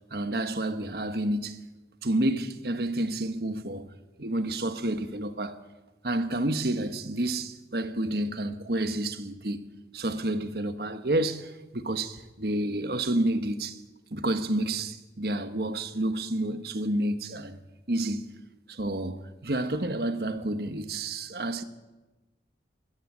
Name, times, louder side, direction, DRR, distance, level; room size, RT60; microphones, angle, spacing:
voice 1, 0.1-1.6 2.0-3.9 4.2-5.6 6.0-9.6 9.9-13.8 14.1-17.6 17.9-18.3 18.7-21.6, right 1 dB, 60° right, 1.4 m, -29 dB
20.5 x 13.5 x 9.7 m
head